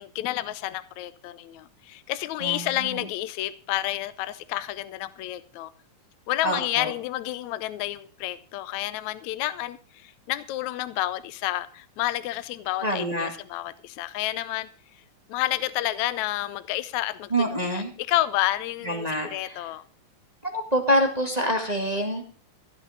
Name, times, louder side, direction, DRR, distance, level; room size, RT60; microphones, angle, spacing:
voice 1, 0.0-5.7 6.3-14.7 15.3-17.8 18.1-19.1 19.3-19.8, left 15 dB, 75° left, 1.9 m, -30 dB
voice 2, 2.4-3.1 6.4-6.9 12.8-13.3 17.3-17.9 18.8-19.7 20.4-22.2, equal, 15° right, 1.7 m, -26 dB
16.0 x 6.3 x 7.4 m
omnidirectional pair, 3.6 m